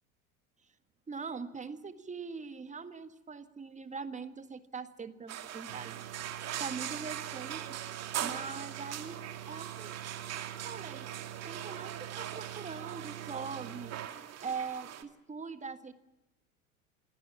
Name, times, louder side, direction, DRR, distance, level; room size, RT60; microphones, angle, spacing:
voice 1, 1.1-7.8 8.2-9.2 9.5-9.9 10.6-11.1 11.4-13.9 14.4-15.9, right 5 dB, 15° right, 10 dB, 1.7 m, -42 dB
sound 1, 5.3-15.0, right 11 dB, 35° right, 2.2 m, -41 dB
sound 2, 5.7-14.1, right 13 dB, 65° right, 1.1 m, -47 dB
27.0 x 20.0 x 7.3 m, 0.98 s
figure-of-eight pair, 70°, 43 cm